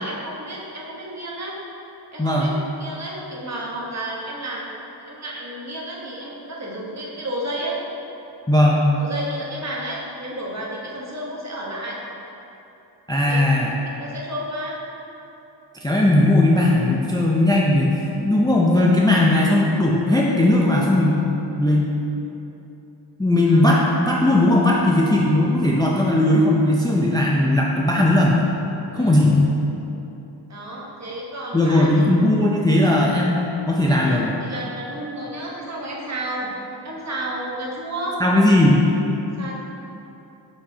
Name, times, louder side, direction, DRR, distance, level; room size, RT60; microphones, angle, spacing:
voice 1, 0.0-1.6 2.1-2.5 2.8-4.8 5.1-7.8 9.0-12.0 13.3-13.6 14.0-14.8 23.4-23.6 28.9-29.3 30.5-32.0 34.0-36.5 36.8-38.2 39.4-39.7, right 1 dB, 35° right, -4 dB, 1.3 m, -31 dB
voice 2, 2.2-2.5 8.5-8.9 13.1-13.8 15.8-21.3 21.6-21.9 23.2-28.5 28.9-29.5 31.5-33.4 33.7-34.4 38.2-38.8, left 1 dB, 10° left, -3 dB, 0.5 m, -18 dB
7.9 x 6.0 x 2.8 m, 3.0 s
wide cardioid pair, 110°, 44 cm